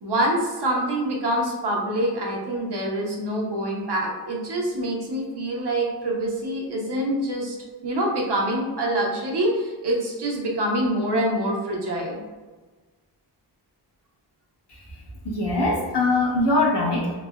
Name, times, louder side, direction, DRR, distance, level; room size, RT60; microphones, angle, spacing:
voice 1, 0.0-7.5 7.8-12.2, right 1 dB, 75° right, -1 dB, 0.7 m, -25 dB
voice 2, 15.2-17.2, left 2 dB, 75° left, -3 dB, 0.8 m, -22 dB
3.2 x 2.1 x 2.2 m, 1.3 s
wide cardioid pair, 80°, 41 cm